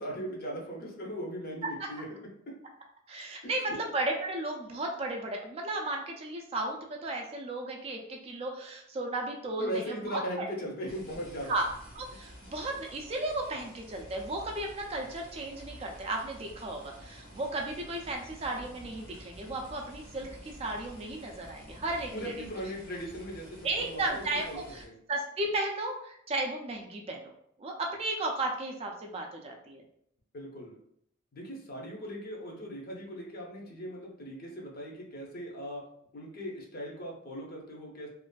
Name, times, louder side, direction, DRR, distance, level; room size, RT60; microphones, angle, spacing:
voice 1, 0.0-2.0 9.6-11.5 22.1-25.0 30.3-30.7 31.3-35.8 36.1-38.1, equal, 50° left, -1 dB, 0.6 m, -39 dB
voice 2, 3.1-10.5 11.5-22.3 23.6-24.8 25.1-27.3 27.6-29.8, right 2 dB, 30° right, 1 dB, 0.3 m, -34 dB
sound 1, 10.8-24.8, equal, 90° left, 0.9 m, -50 dB
2.5 x 2.3 x 2.2 m, 0.70 s
head